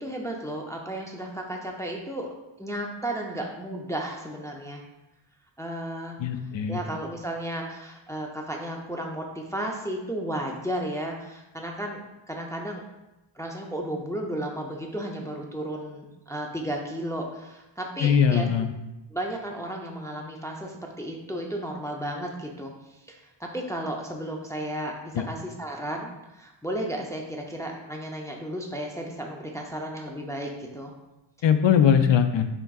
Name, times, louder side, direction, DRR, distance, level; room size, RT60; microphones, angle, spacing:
voice 1, 0.0-2.3 2.6-4.8 5.6-6.2 6.7-12.8 13.4-18.5 19.1-22.7 23.1-30.9, right 1 dB, 5° left, 0 dB, 0.5 m, -33 dB
voice 2, 6.2-6.8 18.0-18.7 25.2-25.3 31.4-32.5, left 8 dB, 70° left, 8 dB, 0.5 m, -21 dB
5.8 x 3.8 x 2.3 m, 0.96 s
wide cardioid pair, 100°, 47 cm